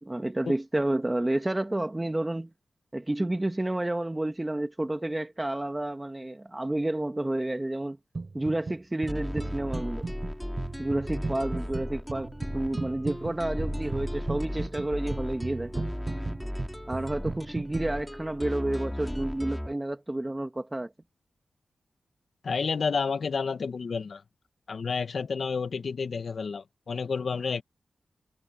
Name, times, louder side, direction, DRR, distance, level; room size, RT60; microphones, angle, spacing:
voice 1, 0.0-2.5 2.9-8.0 8.3-10.1 10.8-15.8 16.9-20.9, right 1 dB, 20° right, 1.6 m, -30 dB
sound 1, 8.1-8.8 9.0-17.9, right 3 dB, 45° right, 3.9 m, -36 dB
sound 2, 9.1-19.7, equal, 5° left, 4.4 m, -36 dB
voice 2, 22.4-24.2 24.7-27.6, left 5 dB, 70° left, 1.6 m, -30 dB
cardioid pair, 65°, 0 cm